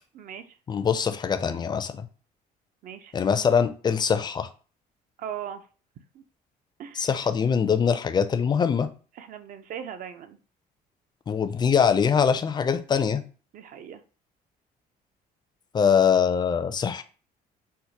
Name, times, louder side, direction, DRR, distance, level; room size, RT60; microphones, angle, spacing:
voice 1, 0.1-0.6 2.8-3.1 5.2-5.6 6.1-6.2 6.8-7.2 9.2-10.4 13.5-14.0, right 9 dB, 55° right, 10 dB, 0.5 m, -39 dB
voice 2, 0.7-2.1 3.1-4.5 7.0-8.9 11.3-13.2 15.7-17.0, left 7 dB, 25° left, 10 dB, 0.4 m, -23 dB
4.5 x 2.1 x 2.8 m, 0.37 s
cardioid pair, 110°, 17 cm